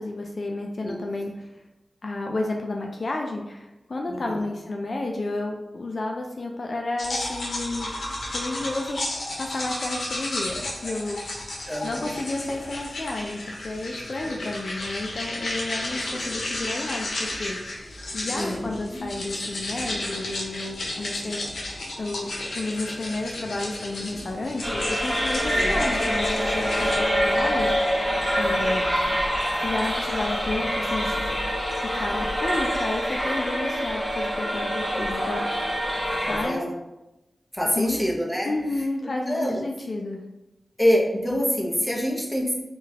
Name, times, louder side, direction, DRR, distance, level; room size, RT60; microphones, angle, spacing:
voice 1, 0.0-1.6 2.0-7.9 8.3-9.0 9.4-11.2 11.8-21.4 22.0-27.7 28.4-28.8 29.6-31.5 31.8-35.8 36.2-36.6 37.8-38.0 38.4-40.2, left 2 dB, 55° left, 1 dB, 0.3 m, -31 dB
voice 2, 4.1-4.5 11.7-12.1 14.2-14.4 18.3-19.0 25.5-25.7 34.9-35.0 35.3-35.4 36.3-36.7 37.5-38.5 39.0-39.6 40.8-42.5, equal, 5° left, -3 dB, 0.7 m, -26 dB
sound 1, 7.0-27.0, left 1 dB, 90° left, 0.6 m, -33 dB
sound 2, 24.6-36.5, equal, 15° right, 1.1 m, -25 dB
3.7 x 2.3 x 2.7 m, 0.99 s
wide cardioid pair, 95°, 0 cm